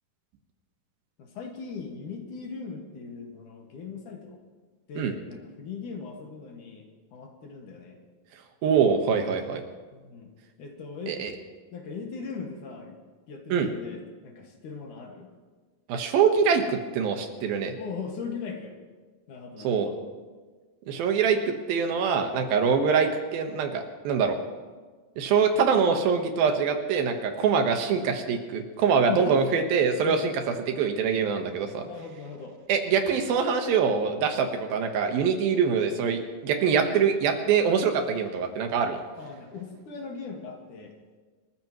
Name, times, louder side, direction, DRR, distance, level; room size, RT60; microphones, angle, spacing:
voice 1, 1.2-4.4 4.9-6.8 7.1-8.0 9.9-10.3 10.6-11.2 11.7-13.0 13.3-15.3 17.7-18.8 19.3-19.9 22.4-22.7 29.1-29.4 30.1-30.3 31.8-32.6 39.2-40.9, left 5 dB, 65° left, 1 dB, 3.2 m, -39 dB
voice 2, 8.6-9.6 11.1-11.3 13.5-13.7 15.9-17.7 19.6-19.9 20.9-24.4 25.2-31.8 32.7-39.0, right 6 dB, 85° right, 5 dB, 3.2 m, -24 dB
27.0 x 14.5 x 3.1 m, 1.4 s
omnidirectional pair, 4.1 m